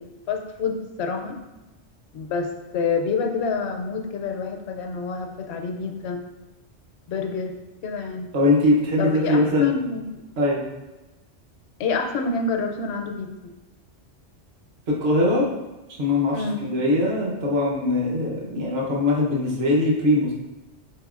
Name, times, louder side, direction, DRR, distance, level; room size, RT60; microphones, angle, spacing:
voice 1, 0.0-1.4 2.1-6.2 7.1-7.5 7.8-8.3 9.0-10.0 11.8-13.5 16.3-16.6, left 4 dB, 75° left, 5 dB, 0.8 m, -28 dB
voice 2, 8.3-9.8 10.4-10.6 14.9-15.5 16.0-20.3, left 2 dB, 65° right, -2 dB, 1.1 m, -21 dB
5.0 x 4.2 x 2.4 m, 1.0 s
omnidirectional pair, 1.2 m